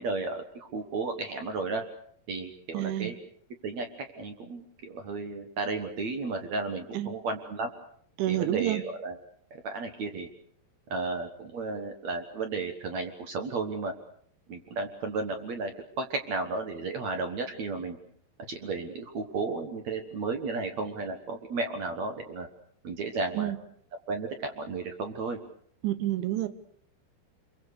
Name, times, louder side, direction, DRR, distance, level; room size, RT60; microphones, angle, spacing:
voice 1, 0.0-1.8 2.3-3.2 3.6-3.9 4.1-7.7 8.3-9.2 9.5-10.3 10.9-13.9 14.5-15.7 16.0-18.0 18.5-22.5 22.8-23.5 24.1-25.4, right 3 dB, 60° right, 6 dB, 1.8 m, -33 dB
voice 2, 2.7-3.1 6.9-7.1 8.2-8.8 23.4-23.6 25.8-26.5, right 14 dB, 80° right, 13 dB, 3.6 m, -29 dB
27.0 x 23.0 x 6.6 m, 0.62 s
omnidirectional pair, 5.3 m